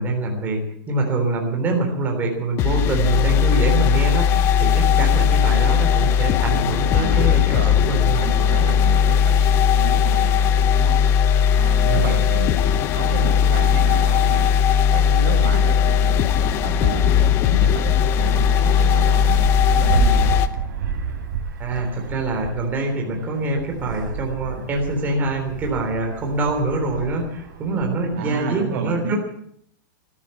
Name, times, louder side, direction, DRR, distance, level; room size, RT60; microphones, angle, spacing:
voice 1, 0.0-7.6 7.8-8.2 11.9-12.2 21.6-29.2, right 2 dB, 15° right, 1 dB, 3.6 m, -24 dB
sound 1, 2.6-20.5, left 8 dB, 20° left, 0.6 m, -18 dB
voice 2, 6.9-7.8 8.1-11.0 11.5-12.5 12.9-14.5 14.9-16.2 16.6-20.3 28.1-29.2, right 5 dB, 45° right, 3 dB, 4.9 m, -31 dB
Wind, 13.7-28.6, right 7 dB, 65° right, 3.4 m, -31 dB
13.5 x 12.5 x 8.5 m, 0.67 s
supercardioid pair, 170°, 11 cm